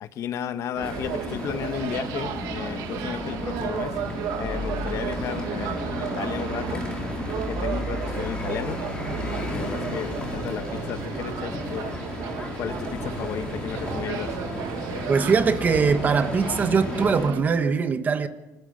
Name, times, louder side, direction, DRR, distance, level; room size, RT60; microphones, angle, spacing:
voice 1, 0.0-3.9 4.4-6.8 7.3-8.8 9.1-11.9 12.6-14.3, left 9 dB, 50° left, 1.3 m, -33 dB
sound 1, 0.7-17.4, right 9 dB, 90° right, 2.0 m, -34 dB
sound 2, 0.8-17.3, left 1 dB, 15° left, 4.3 m, -33 dB
sound 3, 0.9-14.1, left 8 dB, 90° left, 5.4 m, -45 dB
voice 2, 15.1-18.3, right 5 dB, 25° right, 1.3 m, -22 dB
24.5 x 22.5 x 6.6 m
cardioid pair, 180°, 7 cm